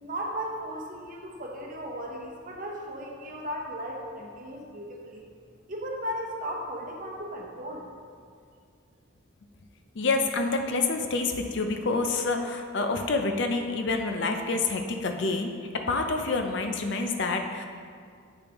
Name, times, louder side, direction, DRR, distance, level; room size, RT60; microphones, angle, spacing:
voice 1, 0.0-5.2 5.7-7.9, equal, 40° right, -1 dB, 0.9 m, -36 dB
voice 2, 9.9-15.5 15.9-17.7, left 3 dB, 55° left, 5 dB, 0.5 m, -27 dB
8.0 x 6.7 x 3.0 m, 2.1 s
head